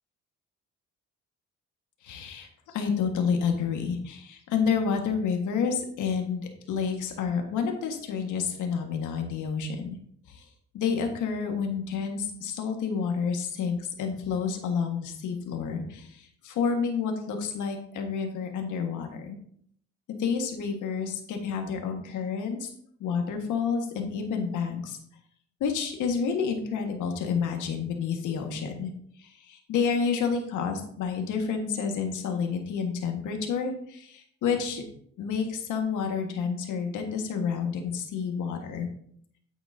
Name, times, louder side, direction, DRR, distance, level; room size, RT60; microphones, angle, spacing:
voice 1, 2.0-10.0 10.3-10.4 10.7-19.3 20.2-22.7 23.0-25.0 25.6-28.9 29.2-34.8 35.2-38.9, left 6 dB, 85° left, 4 dB, 1.6 m, -29 dB
9.1 x 8.8 x 2.7 m, 0.64 s
cardioid pair, 90°, 30 cm